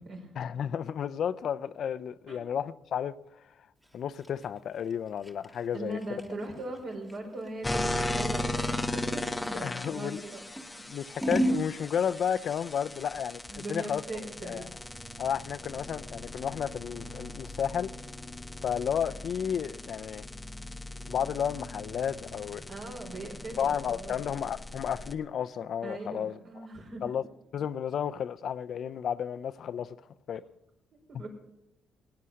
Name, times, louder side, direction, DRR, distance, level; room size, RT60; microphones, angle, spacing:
voice 1, 0.4-3.1 3.9-6.0 9.6-10.2 10.9-14.0 14.4-14.6 15.2-17.9 18.6-20.3 21.1-22.7 23.6-26.7 27.0-27.2 27.5-30.0 30.3-30.4 31.1-31.3, left 8 dB, 65° left, 0.6 m, -32 dB
Scissors, 3.8-10.0 10.5-11.7, right 1 dB, 5° right, 1.4 m, -34 dB
voice 2, 5.7-10.4 10.7-10.8 13.5-14.7 22.7-24.2 25.8-27.0 31.1-31.3, right 2 dB, 60° right, 5.0 m, -40 dB
sound 1, 7.6-25.1, left 1 dB, 10° left, 1.0 m, -38 dB
17.5 x 9.6 x 6.4 m
cardioid pair, 90°, 0 cm